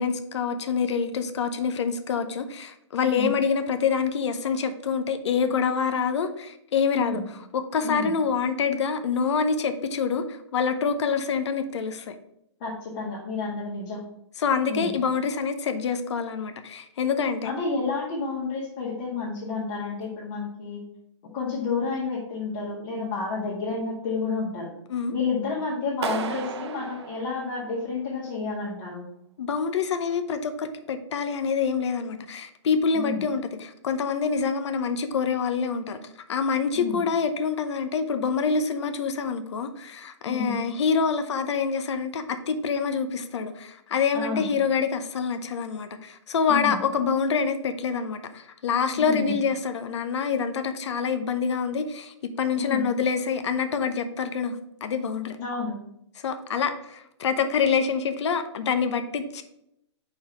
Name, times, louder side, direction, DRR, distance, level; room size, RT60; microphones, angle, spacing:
voice 1, 0.0-7.2 7.5-12.1 14.4-17.6 24.9-25.1 29.4-36.0 36.3-55.4 56.2-59.4, left 6 dB, 65° left, 9 dB, 0.8 m, -26 dB
voice 2, 12.6-14.0 14.7-15.0 17.4-20.8 21.3-24.7 25.1-29.1 32.9-33.2 36.8-37.0 40.2-40.5 44.1-44.5 46.5-46.8 49.0-49.4 52.6-52.9 55.4-55.8, left 4 dB, 40° left, -5 dB, 1.8 m, -30 dB
Clapping, 26.0-28.1, right 6 dB, 60° right, 0.7 m, -34 dB
5.5 x 4.3 x 5.9 m, 0.79 s
hypercardioid pair, 130°, 16 cm